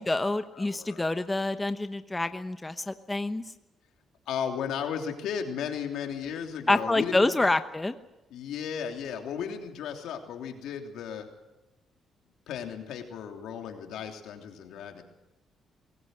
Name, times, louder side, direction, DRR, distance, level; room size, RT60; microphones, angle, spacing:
voice 1, 0.0-3.4 6.7-7.9, left 2 dB, 15° left, 9 dB, 1.0 m, -27 dB
voice 2, 0.5-1.1 4.3-7.5 8.3-11.3 12.5-15.0, left 7 dB, 85° left, 4 dB, 3.1 m, -35 dB
22.5 x 19.0 x 7.8 m, 0.99 s
cardioid pair, 90°, 0 cm